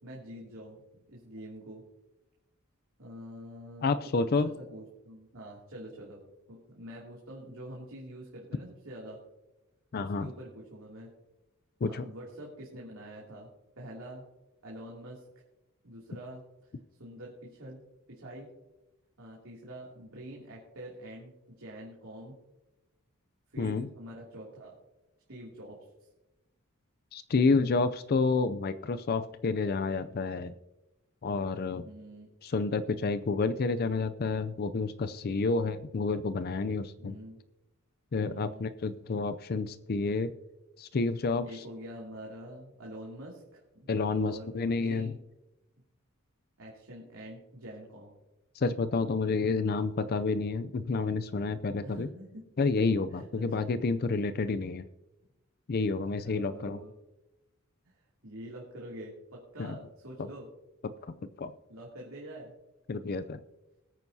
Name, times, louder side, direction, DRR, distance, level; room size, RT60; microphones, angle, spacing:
voice 1, 0.0-1.8 3.0-4.0 4.4-6.2 6.5-9.2 10.0-11.1 11.8-13.5 13.8-14.2 14.6-15.2 15.8-16.7 17.0-17.8 18.1-18.5 19.2-21.3 21.6-22.3 23.5-24.8 25.3-25.9 31.7-32.3 35.1-35.2 35.5-35.6 37.0-37.4 38.3-38.6 41.4-45.2 46.6-48.1 51.8-52.4 53.1-53.2 53.6-53.7 55.8-56.9 57.8-60.5 61.7-62.5, right 1 dB, 70° right, -4 dB, 2.7 m, -46 dB
voice 2, 3.8-4.5 9.9-10.3 11.8-12.0 23.6-23.9 27.1-30.5 31.2-31.8 32.4-37.2 38.1-40.3 40.8-41.6 43.9-45.1 48.5-52.1 52.6-54.9 55.7-56.8 59.6-59.8 60.2-60.3 61.4-61.5 62.9-63.4, left 4 dB, 45° left, 12 dB, 0.4 m, -29 dB
20.5 x 9.2 x 2.7 m, 0.98 s
head